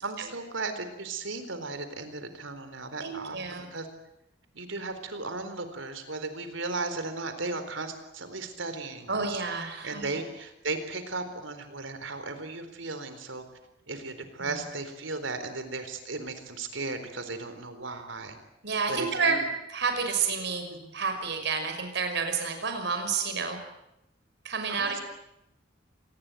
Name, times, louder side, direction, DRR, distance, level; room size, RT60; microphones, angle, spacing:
voice 1, 0.0-3.4 3.7-3.9 4.5-9.4 9.8-13.4 13.9-18.4 18.9-19.4 20.7-20.9 24.7-25.0, right 3 dB, 85° right, 9 dB, 4.1 m, -36 dB
voice 2, 3.0-3.7 9.1-10.2 14.4-14.5 18.6-20.7 20.9-23.6 24.4-25.0, right 5 dB, 65° right, 6 dB, 5.8 m, -30 dB
27.0 x 20.0 x 9.3 m, 0.86 s
head